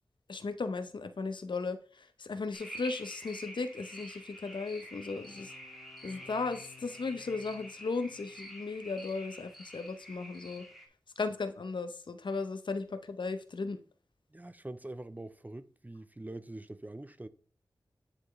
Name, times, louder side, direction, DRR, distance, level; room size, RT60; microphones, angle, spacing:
voice 1, 0.3-5.5 6.0-10.7 11.2-13.8, left 4 dB, 75° left, 0.7 m, -36 dB
sound 1, 2.5-10.9, equal, ahead, 1.6 m, -48 dB
sound 2, 5.0-8.7, left 4 dB, 35° left, 1.2 m, -58 dB
voice 2, 14.3-17.3, right 2 dB, 20° right, 0.5 m, -44 dB
9.9 x 4.4 x 3.1 m
wide cardioid pair, 55°, 8 cm